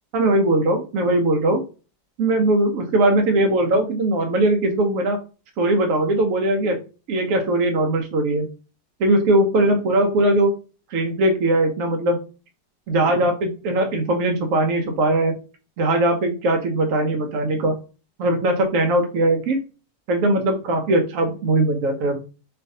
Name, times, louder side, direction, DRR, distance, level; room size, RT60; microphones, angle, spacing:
voice 1, 0.1-1.6 2.2-5.2 5.6-6.8 7.1-8.5 9.0-10.6 10.9-12.2 12.9-15.4 15.8-17.8 18.2-19.6 20.1-22.2, right 1 dB, 70° right, 4 dB, 0.8 m, -20 dB
4.2 x 2.5 x 2.6 m, 0.34 s
omnidirectional pair, 1.9 m